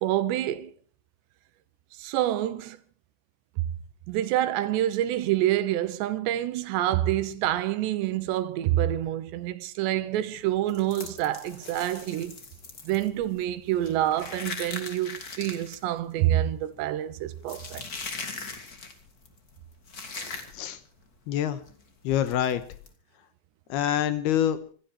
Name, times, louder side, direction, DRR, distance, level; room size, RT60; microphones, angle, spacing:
voice 1, 0.0-0.7 2.0-2.8 4.1-12.4 12.8-17.8, right 13 dB, 80° right, 3.2 m, -27 dB
sound 1, 10.4-20.9 21.1-21.3 21.6-21.8 22.3-22.9, left 4 dB, 40° left, 1.4 m, -40 dB
voice 2, 21.3-21.6 22.0-22.6 23.7-24.6, left 10 dB, 75° left, 2.9 m, -25 dB
26.0 x 12.0 x 4.4 m
omnidirectional pair, 5.0 m